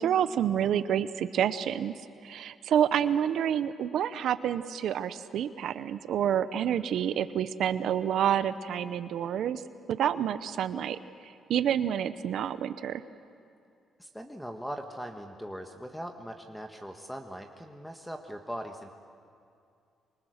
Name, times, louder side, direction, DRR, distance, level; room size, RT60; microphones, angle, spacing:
voice 1, 0.0-1.9 2.2-9.6 9.9-13.0, right 9 dB, 75° right, 13 dB, 0.7 m, -28 dB
voice 2, 14.0-18.9, equal, 5° left, 4 dB, 1.5 m, -40 dB
26.5 x 24.0 x 6.5 m, 2.5 s
cardioid pair, 90°, 0 cm